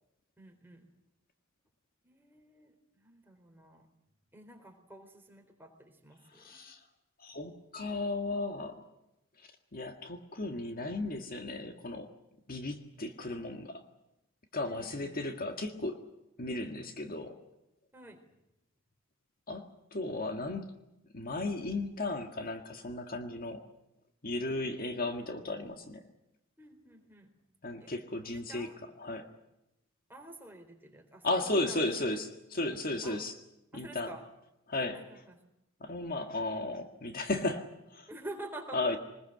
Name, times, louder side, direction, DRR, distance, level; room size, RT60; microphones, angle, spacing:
voice 1, 0.4-0.8 2.0-3.9 4.3-6.6 14.6-15.2 17.9-18.2 24.5-24.6 26.6-27.3 27.8-27.9 28.3-28.7 30.1-31.8 33.0-33.2 33.7-34.2 34.9-35.4 38.1-39.0, right 2 dB, 10° right, 2 dB, 4.0 m, -49 dB
voice 2, 6.3-6.8 7.2-8.8 9.7-12.1 12.5-13.8 14.5-16.0 16.4-17.4 19.5-20.7 21.1-23.7 24.2-26.0 27.6-28.7 29.0-29.3 31.2-33.3 33.7-34.1 34.7-35.0 35.8-38.1 38.7-39.0, left 2 dB, 45° left, 6 dB, 1.8 m, -35 dB
24.0 x 20.5 x 8.0 m, 0.88 s
head